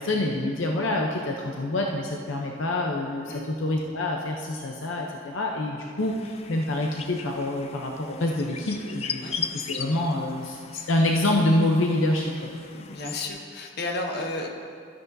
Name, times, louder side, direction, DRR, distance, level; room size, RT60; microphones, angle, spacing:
voice 1, 0.0-12.5, left 1 dB, 75° left, 0 dB, 0.7 m, -26 dB
sound 1, 6.0-13.3, left 7 dB, 30° left, 0.4 m, -38 dB
voice 2, 12.7-14.5, left 2 dB, 55° left, 1 dB, 1.0 m, -32 dB
13.0 x 9.7 x 2.7 m, 2.2 s
head